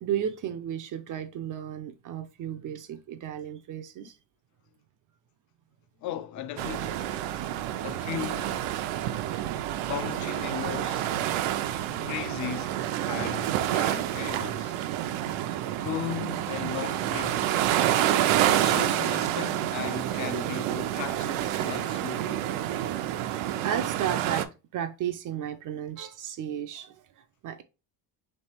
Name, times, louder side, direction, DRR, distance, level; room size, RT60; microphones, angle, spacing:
voice 1, 0.0-4.2 8.8-9.2 13.8-14.0 18.2-18.3 22.7-27.6, right 9 dB, 45° right, 0.4 m, -34 dB
voice 2, 6.0-7.1 7.8-8.7 9.9-11.1 11.9-12.8 13.1-14.8 15.8-17.5 18.5-22.5, left 11 dB, 40° left, 0.4 m, -37 dB
sound 1, 6.6-24.4, right 12 dB, 85° right, 0.6 m, -28 dB
3.3 x 3.2 x 4.3 m
cardioid pair, 145°, 48 cm